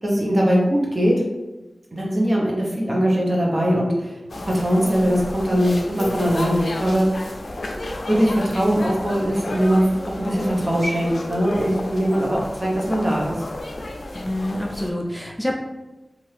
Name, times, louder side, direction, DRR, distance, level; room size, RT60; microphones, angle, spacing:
voice 1, 0.0-1.2 1.9-4.1 4.5-7.1 8.1-13.4, equal, 45° right, -3 dB, 0.9 m, -21 dB
sound 1, 4.3-14.9, left 1 dB, 75° left, 0.4 m, -32 dB
voice 2, 14.1-15.6, left 1 dB, 5° left, 0 dB, 0.4 m, -27 dB
2.7 x 2.5 x 3.3 m, 1.1 s
wide cardioid pair, 50°, 0 cm